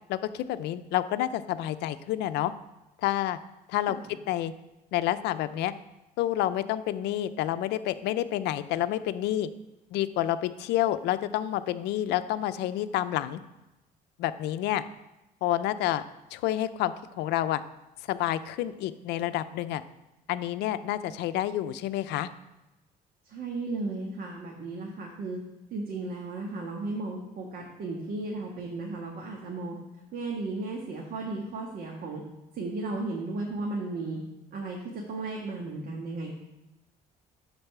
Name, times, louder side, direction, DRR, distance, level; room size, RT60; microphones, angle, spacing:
voice 1, 0.1-2.5 3.0-3.4 3.7-4.0 4.3-4.5 4.9-5.7 6.2-9.5 9.9-13.4 14.2-14.8 15.4-16.0 16.3-17.6 18.1-19.8 20.3-22.3, left 13 dB, 85° left, 13 dB, 0.5 m, -29 dB
voice 2, 23.3-25.4 25.7-29.8 30.1-32.2 32.5-34.2 34.5-36.3, right 3 dB, 60° right, -1 dB, 1.5 m, -35 dB
10.5 x 4.1 x 6.6 m, 0.99 s
cardioid pair, 110°, 17 cm